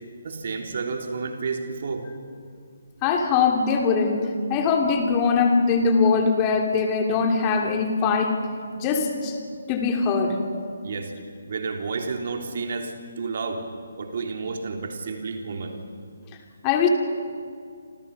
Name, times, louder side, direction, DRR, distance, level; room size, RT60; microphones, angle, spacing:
voice 1, 0.2-2.1 10.8-11.1 11.5-13.6 14.0-15.8, right 4 dB, 50° right, 3 dB, 3.6 m, -31 dB
voice 2, 3.0-8.4 8.8-9.4 9.7-10.4 16.6-16.9, left 5 dB, 20° left, 3 dB, 3.4 m, -22 dB
29.5 x 27.0 x 5.6 m, 2.2 s
figure-of-eight pair, 145°, 0 cm